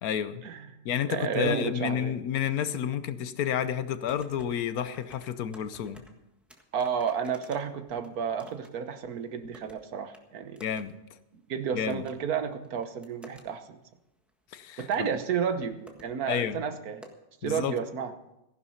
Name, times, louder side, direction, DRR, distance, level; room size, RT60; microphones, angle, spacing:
voice 1, 0.0-0.4 0.8-6.0 10.6-10.9 11.7-12.0 14.5-15.1 16.3-16.6 17.4-17.8, left 9 dB, 80° left, 1.3 m, -30 dB
voice 2, 1.1-2.1 6.7-10.6 11.5-13.8 14.8-17.0 17.4-18.1, right 7 dB, 85° right, 1.5 m, -31 dB
sound 1, 3.8-4.6 4.8-6.1 6.5-8.7 9.0-9.8 10.1-10.2 10.6-10.8 11.1-11.2 11.9-12.1 12.6-13.4 14.3-14.4 14.7-15.1 15.5-15.6 15.9-16.1 16.3-16.4 17.0-17.1, equal, ahead, 1.4 m, -52 dB
15.0 x 11.0 x 5.6 m
omnidirectional pair, 1.5 m